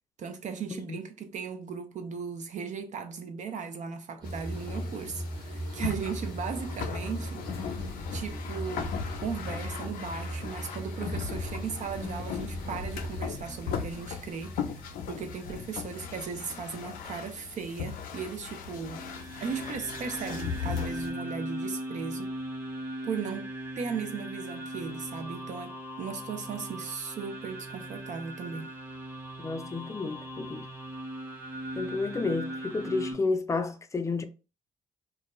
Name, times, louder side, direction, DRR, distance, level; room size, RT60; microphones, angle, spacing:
voice 1, 0.2-8.9 9.2-19.0 19.4-22.4 23.0-23.5 23.8-28.7, right 6 dB, 55° right, 0.4 m, -37 dB
sound 1, 4.2-21.1, left 7 dB, 85° left, 0.5 m, -38 dB
sound 2, 4.2-17.5 17.8-18.5, right 1 dB, 30° right, 1.2 m, -39 dB
sound 3, 18.8-33.1, right 1 dB, 15° right, 0.9 m, -39 dB
voice 2, 29.4-30.6 31.8-34.2, left 3 dB, 20° left, 0.4 m, -31 dB
2.2 x 2.2 x 3.0 m
cardioid pair, 75°, 15 cm